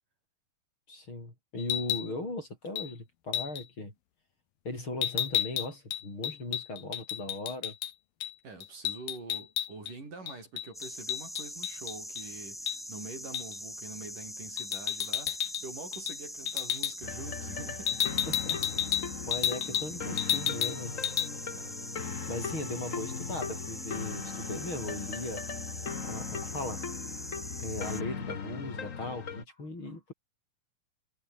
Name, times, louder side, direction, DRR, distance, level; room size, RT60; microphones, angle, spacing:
voice 1, 0.9-3.9 4.7-7.8 18.3-18.6 19.2-20.9 22.3-25.4 26.0-26.9 27.6-30.1, left 2 dB, 35° left, 8.7 m, -38 dB
sound 1, 1.6-2.1 2.8-2.9 3.3-3.6 5.0-7.9 8.2-8.3 8.6-9.9 10.3-12.2 12.7-12.8 13.3-13.6 14.6-15.7 15.9-16.2 16.5-16.9 17.9-19.9 20.2-20.8 21.0-21.3, left 12 dB, 90° left, 3.3 m, -32 dB
voice 2, 8.4-18.1 19.2-19.4 21.5-21.7, right 3 dB, 70° right, 9.5 m, -45 dB
sound 2, 10.7-28.0, equal, ahead, 1.2 m, -43 dB
sound 3, 17.0-29.4, left 6 dB, 55° left, 0.8 m, -39 dB
omnidirectional pair, 3.9 m